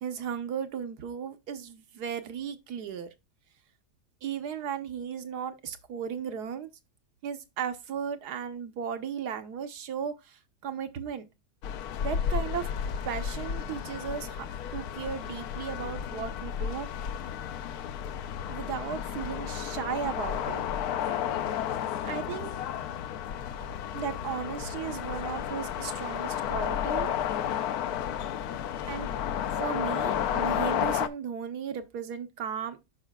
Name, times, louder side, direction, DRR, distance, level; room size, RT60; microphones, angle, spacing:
voice 1, 0.0-3.1 4.2-6.7 7.2-11.3 12.0-12.7 13.0-14.5 14.7-16.9 18.5-20.6 22.0-22.5 23.9-27.1 28.9-29.1 29.6-32.8, right 7 dB, 75° right, 1.4 m, -35 dB
sound 1, 11.6-31.1, left 9 dB, 75° left, 1.1 m, -32 dB
12.0 x 4.9 x 2.2 m
omnidirectional pair, 1.7 m